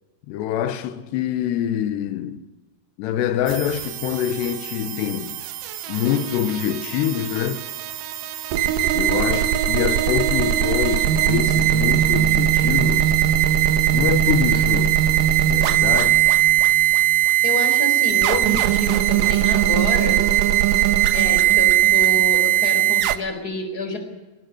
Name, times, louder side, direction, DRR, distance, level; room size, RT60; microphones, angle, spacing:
voice 1, 0.3-2.4 3.0-5.4 5.9-7.6 8.9-13.1 13.9-15.0 15.5-16.3, left 10 dB, 85° left, 3.2 m, -25 dB
sound 1, 3.5-23.2, right 12 dB, 70° right, 2.2 m, -19 dB
voice 2, 17.4-20.2 21.1-24.0, left 2 dB, 20° left, 4.6 m, -28 dB
20.0 x 18.5 x 10.0 m
omnidirectional pair, 4.8 m